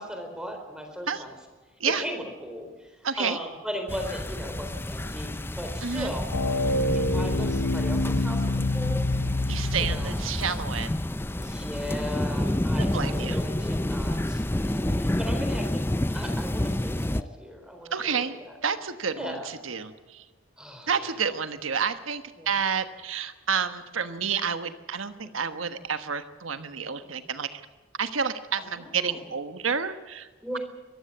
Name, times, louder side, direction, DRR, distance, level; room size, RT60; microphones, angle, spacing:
voice 1, 0.0-1.4 1.8-2.9 3.2-6.4 6.9-9.1 9.8-10.2 11.3-15.8 16.1-18.5 19.1-19.5 20.6-21.2 22.4-22.6 25.2-25.5 28.6-29.2 30.4-30.6, equal, 5° right, 4 dB, 4.1 m, -37 dB
voice 2, 3.0-3.4 5.8-6.1 9.5-10.9 12.8-13.4 17.9-20.2 20.9-27.6 28.0-30.3, right 6 dB, 80° right, 9 dB, 1.3 m, -30 dB
sound 1, 3.9-17.2, left 1 dB, 10° left, 0.6 m, -29 dB
sound 2, 6.3-10.2, left 2 dB, 65° left, 0.8 m, -27 dB
23.5 x 14.5 x 8.4 m, 1.3 s
head